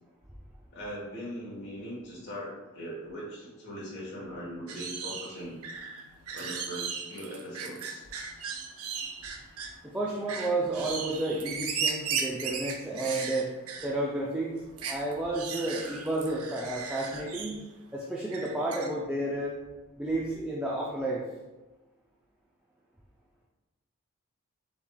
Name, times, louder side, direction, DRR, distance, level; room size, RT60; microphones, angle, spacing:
voice 1, 0.7-5.6 6.3-8.0, equal, 50° left, -6 dB, 1.1 m, -40 dB
sound 1, 4.7-9.8 10.3-14.0 14.3-14.4 14.8-17.7 18.3-18.9, right 6 dB, 85° right, 0.6 m, -36 dB
voice 2, 9.9-13.5 13.8-17.5 17.9-19.6 20.0-21.2, right 2 dB, 5° right, -4 dB, 0.4 m, -31 dB
6.8 x 3.2 x 2.2 m, 1.1 s
head